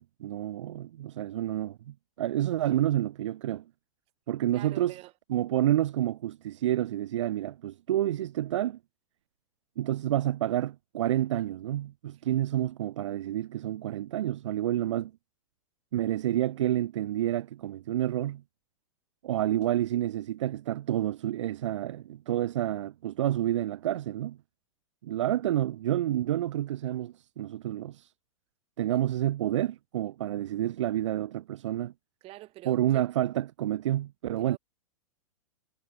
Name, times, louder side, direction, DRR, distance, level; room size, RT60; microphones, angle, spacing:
voice 1, 0.0-3.6 4.3-4.9 5.3-8.8 9.8-15.1 15.9-18.4 19.2-24.4 25.0-28.1 28.8-31.9 32.7-34.6, right 13 dB, 60° right, 0.4 m, -29 dB
voice 2, 4.5-5.1 28.9-29.0 32.2-33.0 34.4-34.6, right 18 dB, 35° right, 3.4 m, -46 dB
figure-of-eight pair, 100°, 17 cm